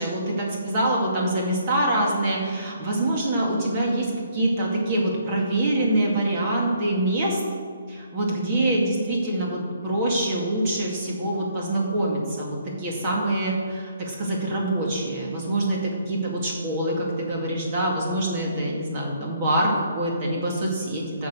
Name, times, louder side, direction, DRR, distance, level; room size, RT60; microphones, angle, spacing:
voice 1, 0.0-7.4 7.9-21.3, right 1 dB, 30° right, -2 dB, 2.3 m, -25 dB
9.4 x 6.3 x 7.8 m, 2.1 s
hypercardioid pair, 160°, 0 cm